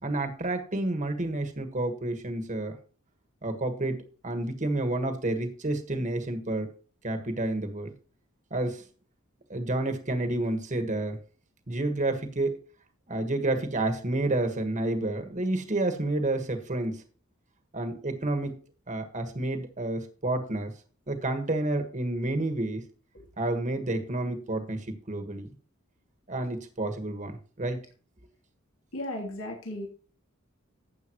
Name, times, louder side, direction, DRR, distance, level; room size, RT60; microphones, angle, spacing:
voice 1, 0.0-2.8 3.4-6.7 7.0-7.9 8.5-8.8 9.5-11.2 11.7-12.6 13.1-17.0 17.7-18.6 18.9-20.7 21.1-22.8 23.4-25.5 26.3-27.8, right 2 dB, 35° right, 7 dB, 1.6 m, -30 dB
voice 2, 28.9-29.9, left 1 dB, 80° left, -1 dB, 3.1 m, -35 dB
12.5 x 8.7 x 3.1 m, 0.39 s
head